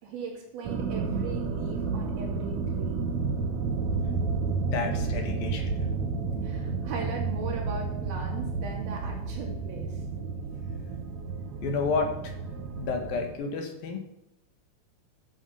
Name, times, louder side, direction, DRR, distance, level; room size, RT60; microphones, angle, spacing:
voice 1, 0.0-3.0 6.4-10.0, right 4 dB, 90° right, -1 dB, 4.5 m, -39 dB
sound 1, 0.6-13.3, right 4 dB, 65° right, 2.0 m, -31 dB
voice 2, 4.7-5.8 11.6-12.1 12.8-14.0, left 4 dB, 75° left, 4 dB, 3.4 m, -30 dB
13.5 x 7.4 x 5.7 m, 0.82 s
omnidirectional pair, 4.2 m